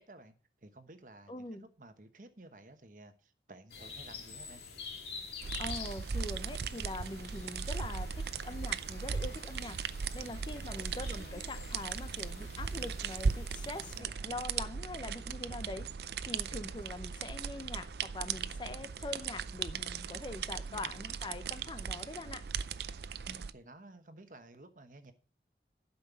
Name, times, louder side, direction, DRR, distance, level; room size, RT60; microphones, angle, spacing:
voice 1, 0.0-4.7 10.6-11.0 13.9-14.4 16.5-16.6 20.7-20.9 23.3-25.1, right 2 dB, 45° right, 1.1 m, -54 dB
voice 2, 1.3-1.6 5.6-9.8 10.1-15.9 16.3-22.4, left 2 dB, 25° left, 0.7 m, -43 dB
sound 1, 3.7-14.0, left 5 dB, 65° left, 2.4 m, -48 dB
sound 2, 5.4-23.5, right 6 dB, 70° right, 0.5 m, -38 dB
12.0 x 5.6 x 6.8 m
head